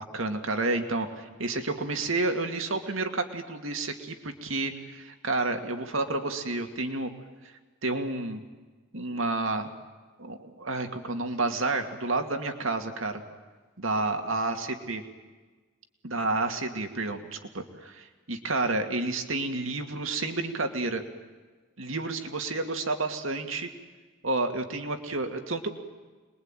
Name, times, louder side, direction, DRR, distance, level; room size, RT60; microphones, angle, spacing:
voice 1, 0.0-7.1 7.4-8.4 8.9-9.7 10.2-13.2 13.8-15.0 16.0-21.0 21.8-23.7 24.2-25.7, right 2 dB, 90° right, 5 dB, 2.4 m, -30 dB
27.5 x 22.0 x 9.1 m, 1.3 s
head